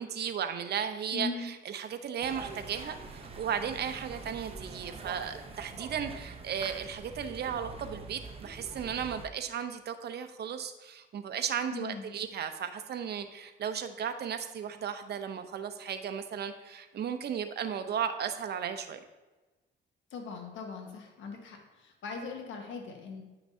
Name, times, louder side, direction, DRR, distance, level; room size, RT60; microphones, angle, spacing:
voice 1, 0.0-19.0, right 8 dB, 55° right, 8 dB, 0.7 m, -35 dB
voice 2, 1.1-1.5 11.7-12.1 20.1-23.2, left 4 dB, 75° left, 2 dB, 1.4 m, -40 dB
sound 1, 2.2-9.2, right 3 dB, 30° right, 0.9 m, -44 dB
9.2 x 5.9 x 2.7 m, 1.2 s
cardioid pair, 90°, 20 cm